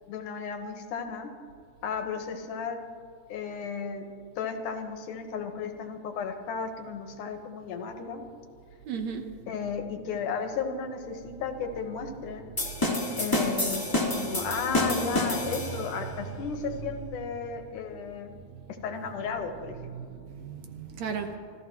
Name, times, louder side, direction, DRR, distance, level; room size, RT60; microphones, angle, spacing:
voice 1, 0.1-1.3 1.8-2.8 3.3-4.0 4.4-8.2 9.5-12.5 13.2-13.9 14.1-18.3 18.8-20.0, left 5 dB, 80° left, 5 dB, 2.7 m, -34 dB
voice 2, 8.9-9.3 18.5-18.6 19.9-21.4, right 6 dB, 65° right, 5 dB, 2.1 m, -35 dB
sound 1, 12.6-16.0, left 1 dB, 10° left, 1.4 m, -28 dB
25.5 x 15.5 x 3.0 m, 2.3 s
omnidirectional pair, 3.6 m